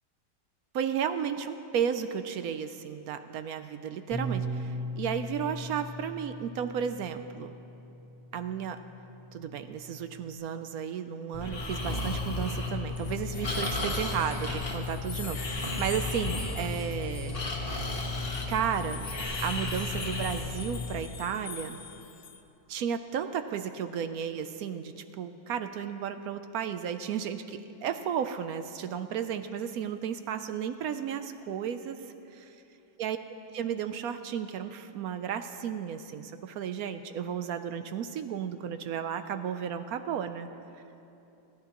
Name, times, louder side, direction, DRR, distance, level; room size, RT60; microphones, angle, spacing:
voice 1, 0.7-7.5 8.3-8.8 9.3-17.4 18.5-19.1 19.4-21.8 22.7-32.5 33.0-33.2 33.5-40.5, right 8 dB, 70° right, 10 dB, 0.9 m, -33 dB
Bass guitar, 4.1-10.3, right 1 dB, 20° right, 2.1 m, -39 dB
Breathing, 11.3-21.0, left 3 dB, 35° left, 1.5 m, -33 dB
sound 1, 13.0-22.4, left 6 dB, 55° left, 0.7 m, -45 dB
25.5 x 11.5 x 2.9 m, 2.8 s
omnidirectional pair, 1.8 m